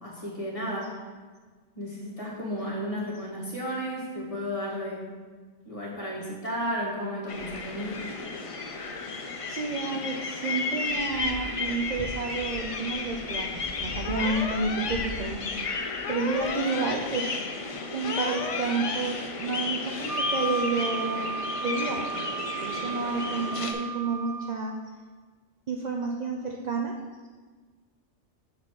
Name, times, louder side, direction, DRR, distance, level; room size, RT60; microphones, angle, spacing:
voice 1, 0.0-1.0 1.8-5.1 5.6-8.1, equal, 30° left, -6 dB, 1.7 m, -33 dB
sound 1, 7.3-23.7, left 4 dB, 45° left, 0.4 m, -33 dB
voice 2, 9.5-17.5 17.9-21.3 21.6-22.3 22.6-24.7 25.7-26.9, right 4 dB, 50° right, 1 dB, 0.5 m, -30 dB
sound 2, 14.0-14.9 16.0-16.9 18.0-18.9, left 5 dB, 90° left, 1.0 m, -34 dB
Wind instrument woodwind instrument, 20.1-24.6, right 4 dB, 75° right, 1.1 m, -34 dB
7.4 x 4.1 x 4.7 m, 1.4 s
omnidirectional pair, 1.2 m